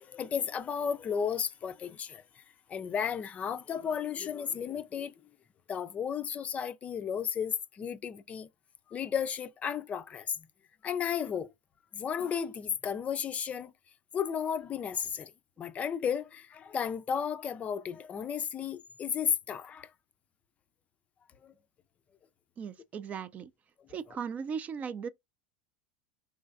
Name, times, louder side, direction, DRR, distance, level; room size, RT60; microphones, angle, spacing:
voice 1, 0.0-2.2 2.7-5.1 5.7-8.5 8.9-10.5 10.8-11.5 11.9-13.7 14.1-15.3 15.6-19.9 21.4-21.5, left 7 dB, 30° left, 0.4 m, -33 dB
voice 2, 22.6-23.5 23.9-25.1, right 6 dB, 30° right, 0.4 m, -37 dB
3.8 x 3.1 x 2.4 m
hypercardioid pair, 90°, 5 cm